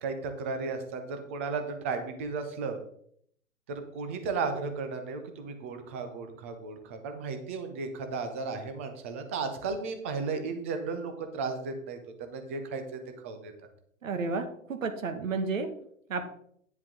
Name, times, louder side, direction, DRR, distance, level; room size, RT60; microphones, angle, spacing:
voice 1, 0.0-2.8 3.7-12.8 13.2-13.5, right 4 dB, 10° right, 7 dB, 0.4 m, -34 dB
voice 2, 14.0-15.7 16.1-16.2, right 4 dB, 70° right, 8 dB, 1.8 m, -31 dB
9.9 x 7.2 x 3.7 m, 0.65 s
hypercardioid pair, 140°, 41 cm